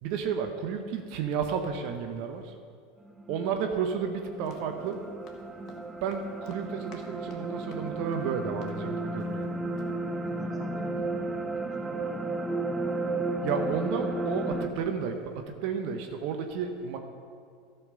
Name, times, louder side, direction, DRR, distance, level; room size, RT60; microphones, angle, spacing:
voice 1, 0.0-2.5 3.3-5.1 6.0-9.5 13.4-17.0, right 6 dB, 55° right, 6 dB, 0.9 m, -32 dB
sound 1, 3.0-14.7, right 2 dB, 15° right, 0.7 m, -33 dB
Run, 4.2-9.5 9.8-9.9, left 4 dB, 45° left, 1.5 m, -55 dB
voice 2, 10.3-13.4, left 1 dB, 20° left, -4 dB, 3.1 m, -49 dB
12.5 x 5.6 x 6.6 m, 2.2 s
hypercardioid pair, 85°, 0 cm